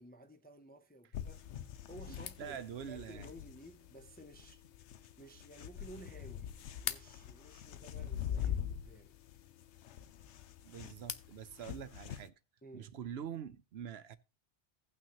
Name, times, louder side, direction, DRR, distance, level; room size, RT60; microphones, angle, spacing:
voice 1, 0.0-1.5 1.9-4.6 5.2-6.5 6.8-9.2 12.6-13.0, right 1 dB, 10° left, 0.4 m, -54 dB
sound 1, 1.1-12.3, left 9 dB, 90° left, 1.0 m, -44 dB
sound 2, 2.1-11.4, left 8 dB, 65° left, 0.9 m, -50 dB
voice 2, 2.1-3.3 10.6-12.3 12.7-14.2, right 8 dB, 70° right, 0.9 m, -45 dB
17.0 x 5.9 x 2.9 m
omnidirectional pair, 1.1 m